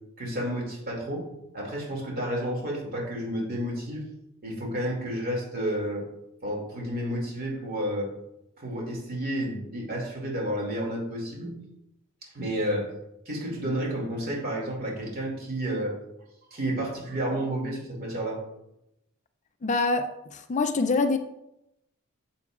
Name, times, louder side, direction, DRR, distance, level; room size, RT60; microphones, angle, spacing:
voice 1, 0.2-1.3 1.5-4.1 4.4-6.1 6.4-8.1 8.6-11.6 12.2-12.9 13.3-16.0 16.5-18.4, equal, 45° right, 2.4 m, -31 dB
voice 2, 19.6-21.2, left 3 dB, 35° left, 0.4 m, -25 dB
9.4 x 7.0 x 2.4 m
head